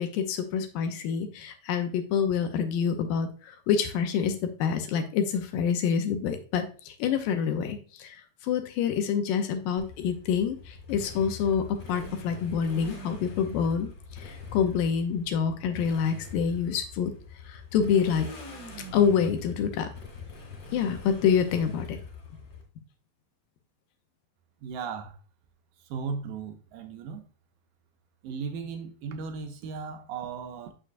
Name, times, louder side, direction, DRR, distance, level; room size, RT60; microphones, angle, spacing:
voice 1, 0.0-17.1 17.5-18.3 18.9-19.9 20.7-22.0, left 7 dB, 80° left, 7 dB, 2.2 m, -27 dB
Motorcycle, 9.8-22.6, left 4 dB, 45° left, 2.8 m, -43 dB
voice 2, 24.6-25.2 25.9-27.2 28.2-30.7, right 5 dB, 80° right, 6 dB, 2.1 m, -36 dB
6.6 x 6.2 x 2.5 m, 0.37 s
omnidirectional pair, 4.2 m